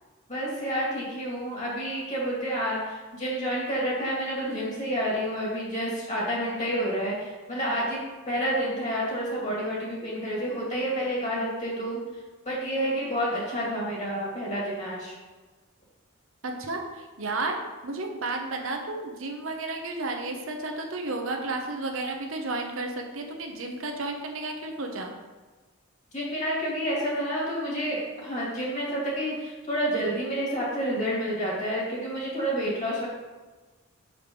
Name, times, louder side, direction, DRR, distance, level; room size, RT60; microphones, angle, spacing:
voice 1, 0.3-8.0 8.3-12.0 12.4-15.2 26.1-33.1, equal, 35° left, -5 dB, 2.5 m, -29 dB
voice 2, 16.4-17.6 17.8-25.1, right 2 dB, 65° right, 3 dB, 0.9 m, -32 dB
6.3 x 5.0 x 5.3 m, 1.3 s
head